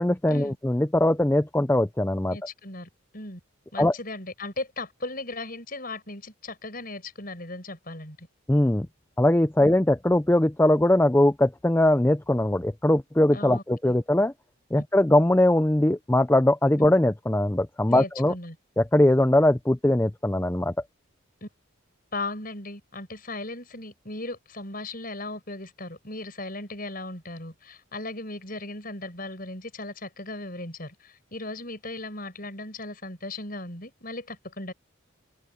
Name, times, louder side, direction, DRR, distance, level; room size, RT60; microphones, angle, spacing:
voice 1, 0.0-2.4 3.8-3.9 8.5-8.9 9.2-14.3 14.7-18.3 18.8-20.7, left 1 dB, 10° left, 0.4 m, -21 dB
voice 2, 2.3-3.4 3.7-8.3 13.3-13.9 17.9-18.6 21.4-21.5 22.1-34.7, left 2 dB, 40° left, 6.8 m, -37 dB
open air
head